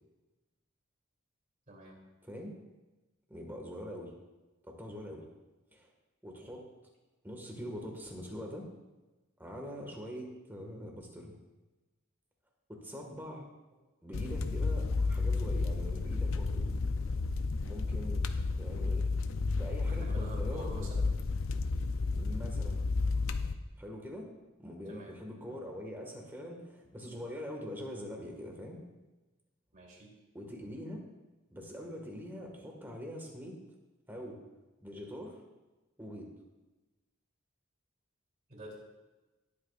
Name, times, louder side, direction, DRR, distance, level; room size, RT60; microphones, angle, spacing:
voice 1, 1.7-2.0 19.8-21.1 24.9-25.1 29.7-30.1 38.5-38.8, right 1 dB, 40° right, -3 dB, 3.1 m, -47 dB
voice 2, 2.2-2.5 3.3-4.1 4.6-5.3 5.7-5.9 6.2-6.7 7.2-8.7 9.4-11.4 12.7-13.5 14.0-16.7 17.6-18.2 18.6-19.1 19.6-20.7 22.1-22.8 23.8-24.3 24.6-28.8 30.3-31.0 31.5-33.6 34.1-34.4 34.8-35.4 36.0-36.3, equal, 10° right, 0 dB, 1.7 m, -43 dB
sound 1, 14.1-23.5, left 3 dB, 75° left, 0.6 m, -32 dB
19.0 x 8.5 x 2.5 m, 1.1 s
head